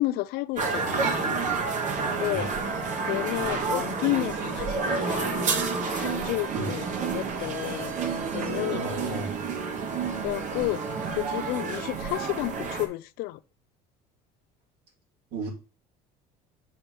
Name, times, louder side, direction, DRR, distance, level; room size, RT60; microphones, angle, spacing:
voice 1, 0.0-1.5 2.0-2.5 3.1-5.5 5.9-8.0 8.3-8.9 10.2-13.4, left 18 dB, 75° left, 0.4 m, -31 dB
sound 1, 0.6-12.9, right 4 dB, 50° right, 1.1 m, -29 dB
voice 2, 8.7-9.5 15.3-15.5, right 2 dB, 75° right, 2.8 m, -34 dB
6.5 x 2.9 x 5.5 m
cardioid pair, 105°, 16 cm